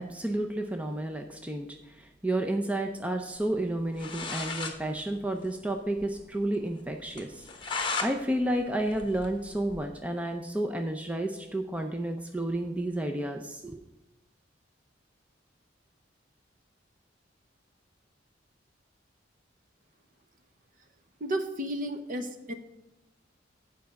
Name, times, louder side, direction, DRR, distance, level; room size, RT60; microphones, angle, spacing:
voice 1, 0.0-13.8, right 1 dB, 5° right, 4 dB, 0.5 m, -31 dB
sound 1, 3.7-3.8 4.0-4.8 5.1-5.2 5.5-5.6 6.0-6.1 6.5-6.6 7.2-8.1 8.5-9.9, left 4 dB, 25° left, 1.0 m, -35 dB
voice 2, 21.2-22.5, right 1 dB, 45° right, 7 dB, 0.9 m, -32 dB
9.0 x 5.2 x 6.8 m, 0.96 s
head